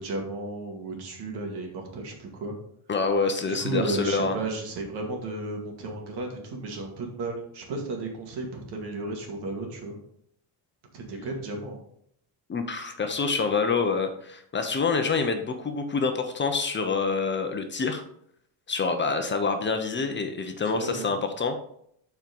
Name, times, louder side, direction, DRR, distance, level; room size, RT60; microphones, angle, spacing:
voice 1, 0.0-2.5 3.5-10.0 10.9-11.8 20.7-21.1, right 2 dB, 65° right, 2 dB, 2.2 m, -33 dB
voice 2, 2.9-4.4 12.5-18.0 18.7-21.6, left 4 dB, 25° left, 6 dB, 0.8 m, -27 dB
7.3 x 4.6 x 5.3 m, 0.68 s
cardioid pair, 140°, 42 cm